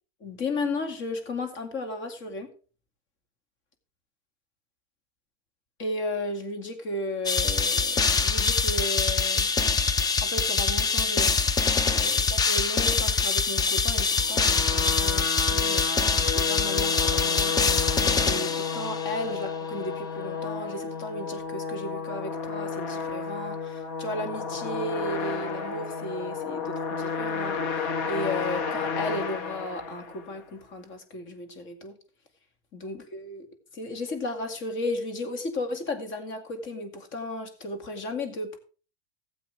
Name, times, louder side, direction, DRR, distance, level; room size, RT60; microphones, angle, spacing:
voice 1, 0.2-2.5 5.8-9.5 10.2-11.4 11.9-17.8 18.3-32.0 32.7-33.5 33.7-38.6, left 2 dB, 40° left, 2.3 m, -34 dB
sound 1, 7.3-19.2, left 5 dB, 15° left, 0.4 m, -24 dB
sound 2, 14.1-30.4, left 5 dB, 60° left, 2.2 m, -32 dB
15.0 x 7.8 x 3.4 m
supercardioid pair, 125°, 31 cm